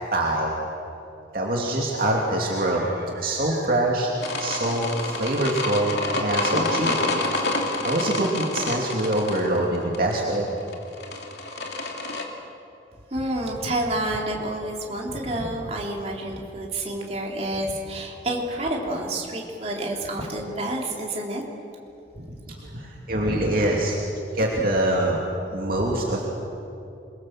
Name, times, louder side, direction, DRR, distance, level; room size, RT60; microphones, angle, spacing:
voice 1, 0.1-0.6 1.3-4.1 4.4-7.0 7.3-10.5 22.6-25.2 25.5-26.3, right 1 dB, 50° right, -2 dB, 2.9 m, -24 dB
sound 1, 4.2-12.2, left 2 dB, 65° left, 3.0 m, -28 dB
voice 2, 13.1-21.4 22.1-22.8 23.1-23.5 25.8-26.0, right 1 dB, 35° right, -1 dB, 3.6 m, -29 dB
27.5 x 23.0 x 7.6 m, 2.7 s
head